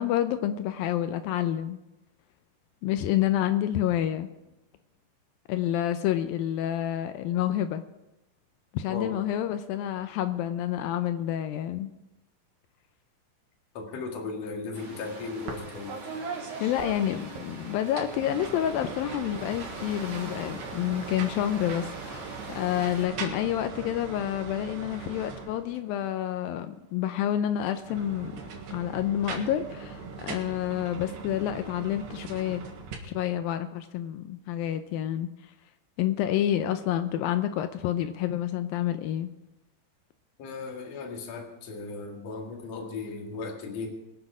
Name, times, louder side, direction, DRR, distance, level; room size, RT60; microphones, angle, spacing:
voice 1, 0.0-1.8 2.8-4.3 5.5-7.8 8.7-11.9 16.6-28.3 28.7-32.6 33.0-35.3 36.0-39.3, left 11 dB, 80° left, 9 dB, 2.1 m, -28 dB
voice 2, 13.7-16.0 40.4-43.9, left 4 dB, 45° left, 1 dB, 2.6 m, -36 dB
sound 1, 14.7-23.0, right 2 dB, 40° right, 3.1 m, -43 dB
sound 2, 15.5-15.6 15.9-17.5 17.9-25.9 27.7-32.9, right 5 dB, 80° right, 3.8 m, -40 dB
22.5 x 7.8 x 4.9 m, 0.93 s
omnidirectional pair, 4.8 m